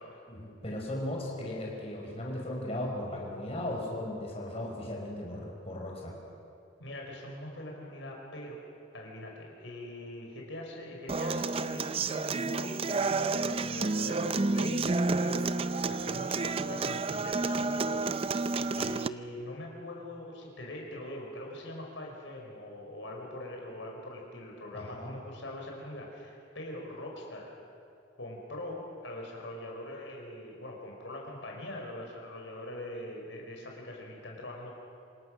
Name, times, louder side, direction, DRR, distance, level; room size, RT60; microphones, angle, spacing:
voice 1, 0.3-6.1 24.7-25.1, left 1 dB, 30° left, -2 dB, 5.3 m, -37 dB
voice 2, 6.8-8.6 8.9-18.1 18.7-27.5 28.1-34.7, left 1 dB, 75° left, 0 dB, 5.0 m, -42 dB
Human voice / Acoustic guitar, 11.1-19.1, right 3 dB, 30° right, 0.5 m, -30 dB
27.5 x 26.5 x 6.5 m, 2.5 s
head